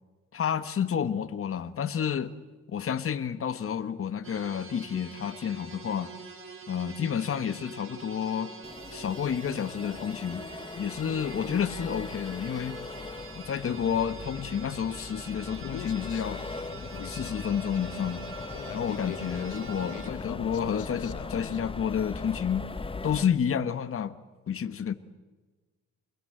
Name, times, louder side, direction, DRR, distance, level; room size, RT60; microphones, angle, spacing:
voice 1, 0.3-2.3 2.7-6.1 6.7-8.5 8.9-10.4 10.8-12.8 13.3-16.4 16.9-18.2 18.7-22.7 23.0-24.2 24.5-24.9, left 8 dB, 45° left, 1.5 m, -30 dB
sound 1, 4.2-20.1, right 5 dB, 45° right, 3.9 m, -46 dB
Accelerating revving vroom, 8.6-23.2, left 3 dB, 20° left, 1.2 m, -40 dB
Human voice, 15.6-21.6, left 11 dB, 75° left, 1.4 m, -43 dB
28.0 x 21.0 x 7.9 m
cardioid pair, 90°, 30 cm